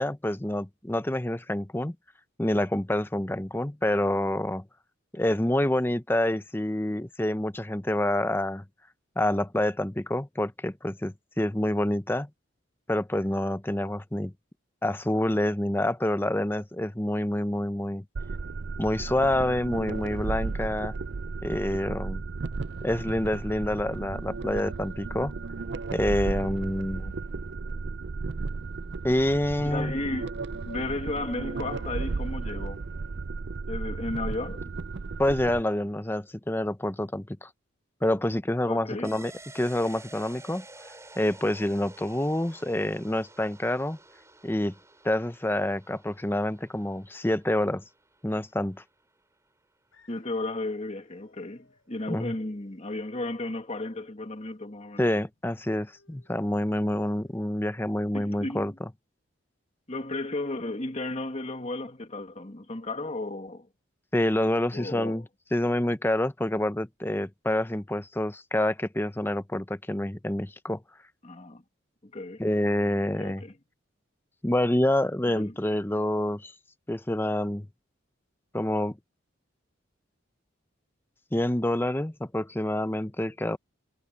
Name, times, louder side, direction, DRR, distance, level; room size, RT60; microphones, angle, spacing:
voice 1, 0.0-1.9 2.4-4.6 5.1-8.6 9.2-12.3 12.9-14.3 14.8-18.0 18.8-20.9 21.4-22.2 22.8-25.3 25.9-27.1 29.0-30.0 35.2-37.5 38.0-40.6 41.2-44.0 44.4-44.7 45.0-47.8 48.2-48.8 52.1-52.3 55.0-58.7 64.1-65.2 65.5-70.8 72.4-73.4 74.4-76.5 76.9-77.7 78.5-79.0 81.3-83.6, left 1 dB, 10° left, 0.6 m, -27 dB
sound 1, 18.1-35.6, right 4 dB, 55° right, 0.5 m, -34 dB
voice 2, 29.6-30.4 30.7-32.8 33.7-34.7 38.7-39.1 50.1-55.1 58.1-58.7 59.9-63.7 64.7-65.2 71.2-71.6 72.0-72.4 73.2-73.5 75.3-75.5, left 2 dB, 35° left, 2.0 m, -34 dB
sound 2, 39.0-48.4 48.8-48.9, right 2 dB, 15° right, 7.2 m, -50 dB
sound 3, 49.9-57.9, left 2 dB, 75° left, 5.7 m, -67 dB
head